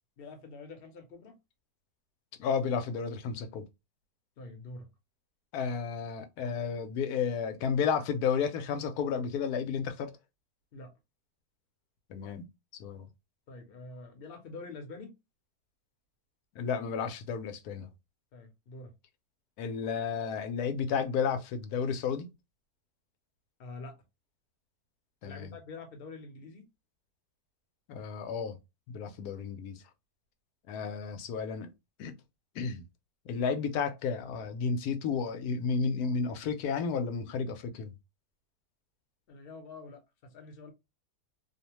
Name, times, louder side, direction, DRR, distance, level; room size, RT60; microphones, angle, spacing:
voice 1, 0.2-1.3 4.4-4.9 10.7-10.9 13.5-15.1 18.3-18.9 23.6-24.0 25.2-26.6 39.3-40.7, left 3 dB, 50° left, 0.8 m, -46 dB
voice 2, 2.4-3.7 5.5-10.1 12.1-12.5 12.8-13.1 16.6-17.9 19.6-22.3 25.2-25.5 27.9-28.6 28.9-29.8 30.7-31.7 32.0-32.1 32.6-32.8 33.3-37.9, left 6 dB, 80° left, 1.1 m, -32 dB
2.7 x 2.1 x 2.9 m
omnidirectional pair, 1.6 m